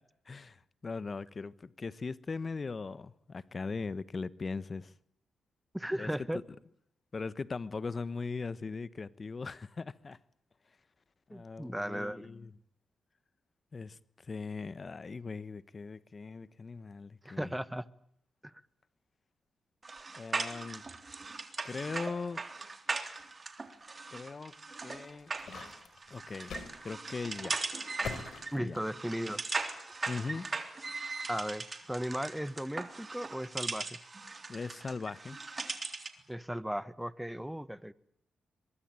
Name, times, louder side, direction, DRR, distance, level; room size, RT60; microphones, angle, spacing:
voice 1, 0.3-4.9 6.0-6.1 7.1-10.2 11.3-12.5 13.7-14.0 14.3-17.5 20.2-20.8 21.6-22.4 24.1-24.6 24.8-25.3 26.1-26.6 26.8-27.6 28.6-28.8 30.1-30.5 34.5-35.4, left 4 dB, 40° left, 1.1 m, -39 dB
voice 2, 5.7-6.4 11.3-12.3 17.2-17.9 18.4-18.5 28.5-29.4 31.3-34.0 36.3-37.9, equal, 5° right, 1.3 m, -36 dB
sound 1, 19.8-36.2, right 3 dB, 40° right, 3.5 m, -39 dB
sound 2, 24.9-26.8 27.1-27.3 28.0-29.3, left 5 dB, 70° left, 4.5 m, -43 dB
23.0 x 23.0 x 9.0 m
supercardioid pair, 55°, 0 cm